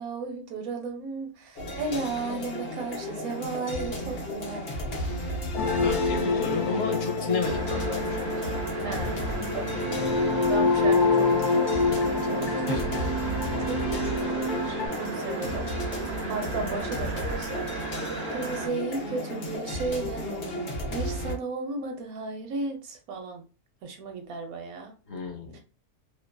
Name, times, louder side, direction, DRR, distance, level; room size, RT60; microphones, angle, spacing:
voice 1, 0.0-4.7 8.8-9.2 9.5-12.9 13.6-23.4 23.8-24.9 25.5-25.6, right 3 dB, 75° right, 3 dB, 1.1 m, -35 dB
sound 1, 1.6-21.3, left 1 dB, 50° left, 0.8 m, -33 dB
sound 2, 5.6-14.9, left 3 dB, 90° left, 0.4 m, -27 dB
voice 2, 5.8-8.6 10.8-11.1 12.5-12.9 25.1-25.6, left 4 dB, 65° left, 1 dB, 1.0 m, -32 dB
sound 3, 7.4-18.7, right 4 dB, 50° right, 0.5 m, -36 dB
2.7 x 2.3 x 2.2 m, 0.34 s
omnidirectional pair, 1.6 m